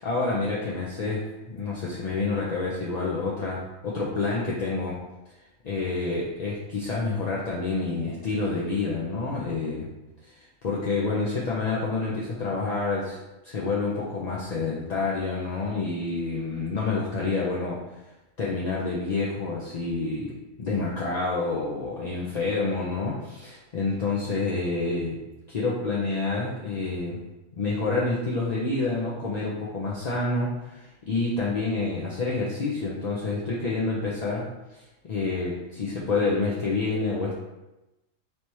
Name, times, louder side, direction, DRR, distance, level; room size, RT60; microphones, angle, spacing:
voice 1, 0.0-5.0 5.6-9.9 10.2-10.3 10.6-13.2 13.4-17.8 18.4-25.2 25.5-27.2 27.5-34.8 35.1-37.4, left 3 dB, 50° left, -5 dB, 0.5 m, -28 dB
3.3 x 2.8 x 4.5 m, 0.99 s
omnidirectional pair, 1.3 m